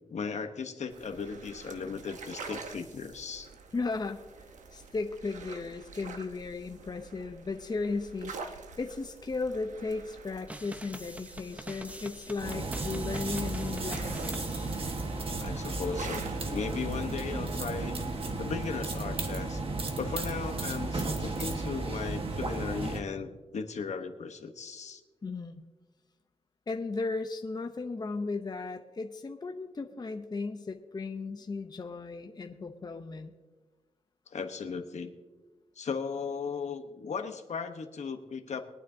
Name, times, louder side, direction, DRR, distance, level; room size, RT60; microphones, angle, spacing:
voice 1, 0.1-3.5 15.4-18.0 18.4-19.6 20.0-25.0 34.3-35.1 35.8-38.6, left 5 dB, 70° left, 6 dB, 1.1 m, -36 dB
sound 1, 0.9-18.7, right 4 dB, 85° right, 1.1 m, -47 dB
voice 2, 3.7-4.2 4.7-14.7 25.2-25.6 26.7-33.3, left 3 dB, 35° left, 5 dB, 0.8 m, -36 dB
sound 2, 10.5-15.4, right 1 dB, 10° right, 0.8 m, -45 dB
sound 3, 12.4-23.0, right 3 dB, 50° right, 1.4 m, -34 dB
22.5 x 9.4 x 2.8 m, 1.3 s
wide cardioid pair, 90°, 12 cm